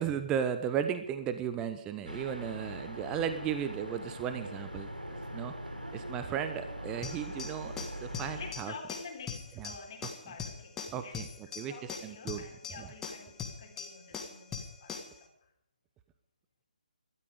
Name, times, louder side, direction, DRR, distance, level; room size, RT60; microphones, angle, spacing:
voice 1, 0.0-4.9 5.3-5.5 5.9-8.7 9.6-9.8 10.9-11.3 11.6-12.4 12.8-12.9, right 8 dB, 15° right, 9 dB, 1.0 m, -35 dB
sound 1, 2.1-8.5, equal, 90° right, 3.4 m, -41 dB
sound 2, 7.0-15.2, left 6 dB, 10° left, 1.8 m, -42 dB
voice 2, 8.3-11.2 11.5-15.3, left 5 dB, 35° left, 3 dB, 3.7 m, -48 dB
18.5 x 13.5 x 5.1 m, 0.75 s
figure-of-eight pair, 145°, 5 cm